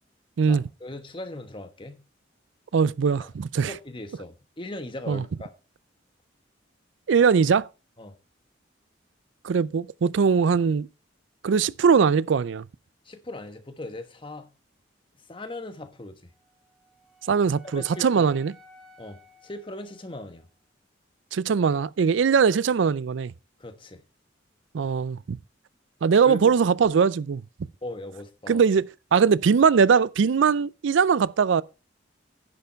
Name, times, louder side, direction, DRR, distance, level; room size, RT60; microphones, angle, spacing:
voice 1, 0.4-2.0 3.2-3.3 3.6-5.5 8.0-8.2 13.0-14.5 15.2-16.3 17.7-18.2 19.0-20.5 23.6-24.0 26.2-26.5 27.8-28.6, left 1 dB, 25° left, 1.2 m, -39 dB
voice 2, 2.7-3.7 5.1-5.2 7.1-7.7 9.4-10.9 11.4-12.7 17.3-18.5 21.3-23.3 24.7-25.4 26.0-27.4 28.5-31.6, right 6 dB, 75° right, 0.4 m, -21 dB
Wind instrument woodwind instrument, 16.3-20.5, left 1 dB, ahead, 3.7 m, -54 dB
10.5 x 6.9 x 4.5 m
head